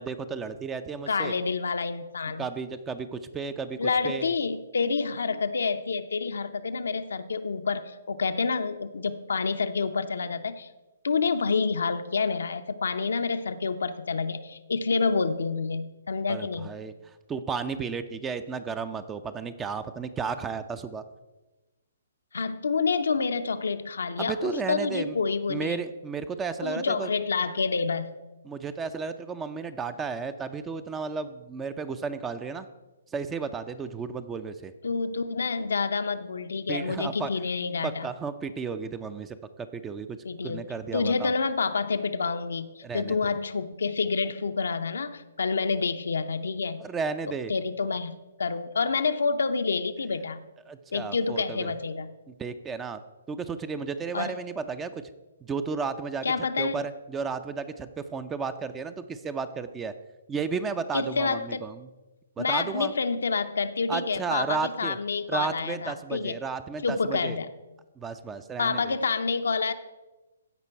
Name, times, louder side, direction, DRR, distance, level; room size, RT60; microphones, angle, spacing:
voice 1, 0.0-1.3 2.4-3.8 4.0-4.3 16.3-21.0 24.2-25.2 25.5-27.1 28.4-32.7 33.1-34.7 36.7-37.3 37.8-40.2 40.4-41.3 42.8-43.3 46.8-47.5 50.7-51.7 52.3-53.0 53.3-55.0 55.4-56.3 56.6-59.9 60.3-61.9 62.4-62.9 63.9-65.0 65.3-67.4 68.0-68.9, right 5 dB, 15° right, 12 dB, 0.5 m, -33 dB
voice 2, 1.1-2.5 3.8-10.7 11.0-16.7 22.3-25.8 26.6-28.1 34.8-38.1 40.2-40.6 40.9-46.9 47.5-50.4 50.9-52.1 54.1-54.3 56.2-56.8 60.9-61.6 62.4-66.4 66.8-67.5 68.6-69.7, left 4 dB, 70° left, 9 dB, 0.6 m, -28 dB
15.0 x 5.2 x 4.5 m, 1.1 s
figure-of-eight pair, 130°, 0 cm